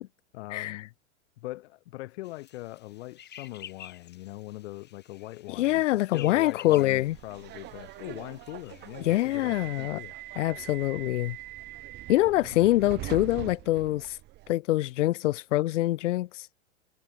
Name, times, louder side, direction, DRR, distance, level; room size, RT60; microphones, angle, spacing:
voice 1, 0.3-0.9 1.4-10.1 12.5-12.6, left 18 dB, 60° left, 2.1 m, -41 dB
sound 1, 2.2-9.4, left 10 dB, 30° left, 8.0 m, -51 dB
voice 2, 5.6-7.2 9.0-10.0 10.4-11.4 12.1-14.2 14.5-16.4, left 16 dB, 80° left, 0.5 m, -25 dB
Subway metro underground, 6.9-14.5, right 18 dB, 30° right, 0.6 m, -42 dB
hypercardioid pair, 115°, 36 cm